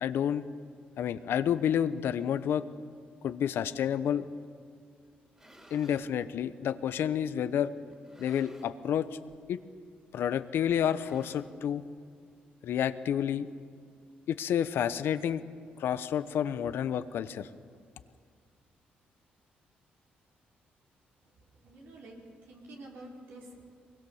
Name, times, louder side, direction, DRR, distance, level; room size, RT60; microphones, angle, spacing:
voice 1, 0.0-0.4 1.0-2.7 3.2-4.3 5.7-7.7 8.2-9.1 9.5-9.6 10.1-11.8 12.6-13.5 14.3-15.4 15.8-17.5, left 9 dB, 75° left, 12 dB, 0.9 m, -29 dB
sound 1, 5.1-6.1 6.9-7.0 7.9-8.9 9.2-9.5 9.8-9.9 10.8-11.8, right 1 dB, 15° right, 3.5 m, -57 dB
voice 2, 21.2-23.7, right 1 dB, 80° right, -2 dB, 5.2 m, -49 dB
24.0 x 21.0 x 7.2 m, 2.1 s
supercardioid pair, 65°, 4 cm